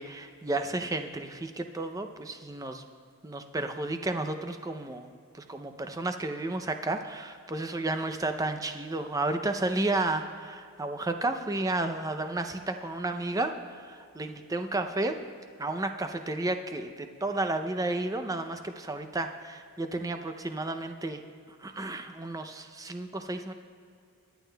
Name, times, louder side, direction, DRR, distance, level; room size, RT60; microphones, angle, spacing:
voice 1, 0.0-2.8 3.2-5.1 5.3-15.1 15.6-21.2 21.6-23.5, right 2 dB, 15° right, 7 dB, 0.5 m, -32 dB
23.5 x 9.2 x 2.3 m, 2.3 s
head